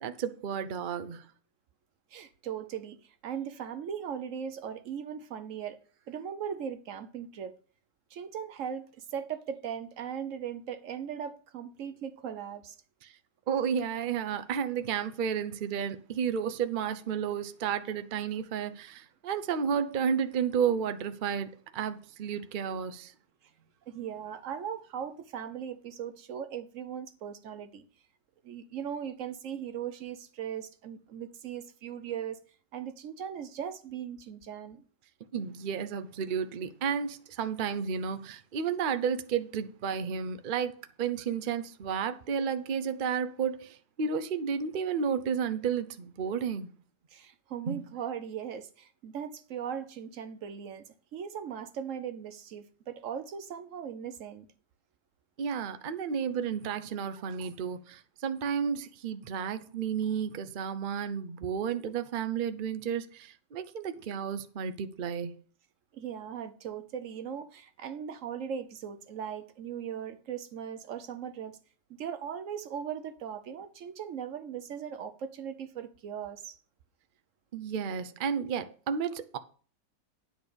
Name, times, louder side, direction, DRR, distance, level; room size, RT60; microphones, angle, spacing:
voice 1, 0.0-1.3 13.0-13.1 13.5-23.1 35.3-46.7 47.7-47.9 55.4-65.3 77.5-79.4, right 7 dB, 75° right, 0.4 m, -32 dB
voice 2, 2.1-5.8 6.1-7.5 8.1-12.8 23.9-27.8 28.4-32.4 32.7-34.8 47.1-50.8 51.1-54.5 65.9-71.6 71.9-76.6, right 8 dB, 60° right, 1.0 m, -39 dB
10.0 x 4.3 x 6.9 m
omnidirectional pair, 1.8 m